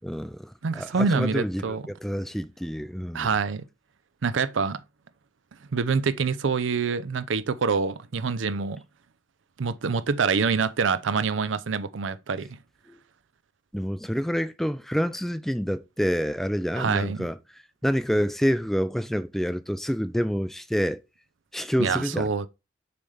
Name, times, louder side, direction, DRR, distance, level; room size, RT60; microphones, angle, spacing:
voice 1, 0.0-3.3 12.9-13.0 13.7-21.0 21.5-22.3, equal, ahead, 0.4 m, -28 dB
voice 2, 0.6-1.8 3.1-3.6 4.2-4.8 5.7-8.8 9.6-12.6 16.7-17.3 21.8-22.5, right 5 dB, 80° right, 0.5 m, -26 dB
6.8 x 3.3 x 5.4 m
head